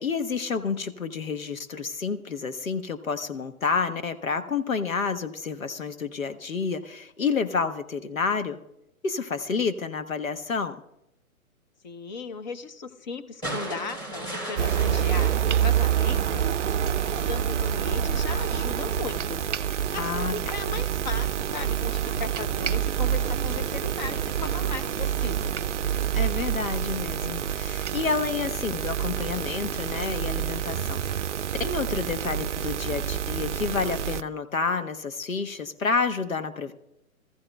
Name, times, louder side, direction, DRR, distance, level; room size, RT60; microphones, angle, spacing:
voice 1, 0.0-8.6 9.0-10.8 20.0-20.5 26.1-31.3 31.6-36.7, left 5 dB, 70° left, 9 dB, 1.2 m, -29 dB
voice 2, 11.8-16.6 17.0-25.6, left 4 dB, 30° left, 10 dB, 0.9 m, -37 dB
sound 1, 13.4-16.7 18.1-18.2, right 1 dB, 10° left, 3.4 m, -37 dB
sound 2, 14.6-34.2, right 9 dB, 60° right, 0.5 m, -27 dB
24.5 x 14.5 x 2.3 m, 0.85 s
figure-of-eight pair, 125°, 42 cm